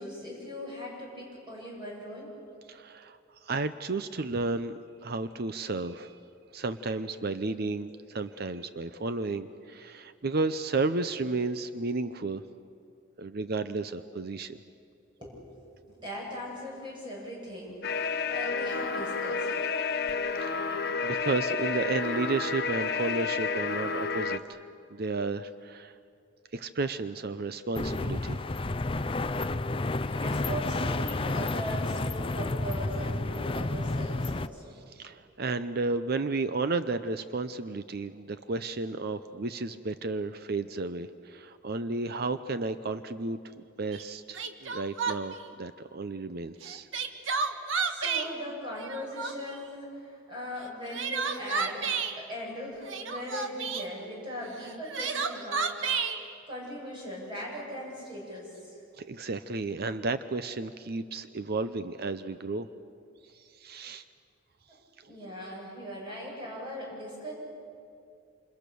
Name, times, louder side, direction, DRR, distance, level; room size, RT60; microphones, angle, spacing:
voice 1, 0.0-2.3 7.9-8.0 15.2-19.6 30.1-34.8 47.8-51.9 52.2-56.2 56.5-58.8 65.1-67.3, equal, 25° right, -3 dB, 7.6 m, -40 dB
voice 2, 2.7-6.2 6.5-12.4 13.2-14.6 20.3-24.6 24.9-26.0 26.5-28.4 34.9-43.4 43.8-46.9 59.0-62.7 63.2-64.0 65.0-65.1, right 3 dB, 50° right, 11 dB, 0.7 m, -33 dB
sound 1, 17.8-24.4, left 4 dB, 50° left, 1.1 m, -30 dB
sound 2, 27.7-34.5, left 2 dB, 25° left, 0.5 m, -30 dB
Crying sobbing, 43.9-44.0 44.3-45.4 46.6-48.3 48.8-49.6 50.6-52.1 52.8-53.9 54.6-56.2, right 5 dB, 70° right, 1.6 m, -31 dB
27.5 x 27.0 x 6.9 m, 2.5 s
head